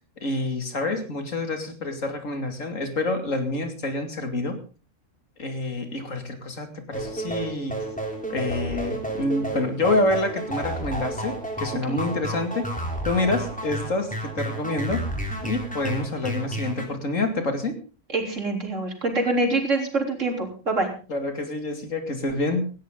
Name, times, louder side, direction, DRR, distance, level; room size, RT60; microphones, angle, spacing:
voice 1, 0.2-4.6 5.4-7.8 8.3-12.6 13.0-15.0 15.4-17.7 21.1-22.7, left 2 dB, 80° left, 6 dB, 2.9 m, -27 dB
sound 1, 6.9-16.9, right 1 dB, 5° left, 3.6 m, -31 dB
voice 2, 18.1-20.9, right 2 dB, 70° right, 2 dB, 4.0 m, -25 dB
18.0 x 15.0 x 3.9 m, 0.36 s
omnidirectional pair, 1.3 m